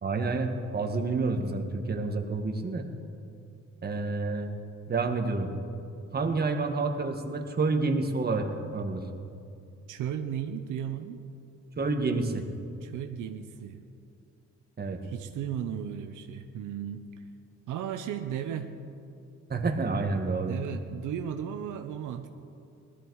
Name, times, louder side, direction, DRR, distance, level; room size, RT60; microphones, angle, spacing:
voice 1, 0.0-2.9 3.8-4.5 4.9-5.5 6.1-9.0 11.8-12.5 14.8-15.0 19.5-20.6, right 3 dB, 30° right, 4 dB, 1.6 m, -29 dB
voice 2, 9.9-11.2 12.8-13.8 15.0-17.0 17.7-18.7 20.5-22.3, right 9 dB, 80° right, 7 dB, 0.8 m, -35 dB
18.5 x 13.0 x 4.8 m, 2.6 s
cardioid pair, 90°, 30 cm